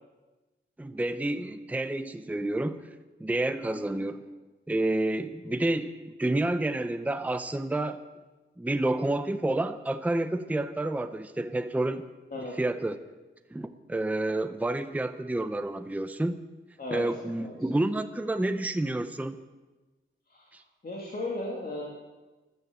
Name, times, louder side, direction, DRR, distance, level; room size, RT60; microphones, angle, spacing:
voice 1, 0.8-2.8 3.2-4.2 4.7-8.0 8.6-12.1 12.6-13.0 13.5-16.4 16.9-19.4 20.5-20.6, right 2 dB, 5° right, 10 dB, 0.6 m, -29 dB
voice 2, 3.7-4.0 12.3-12.5 16.8-17.0 17.4-17.5 20.3-20.4 20.8-21.8, left 2 dB, 45° left, -2 dB, 2.7 m, -35 dB
14.5 x 12.0 x 8.0 m, 1.2 s
wide cardioid pair, 160°, 21 cm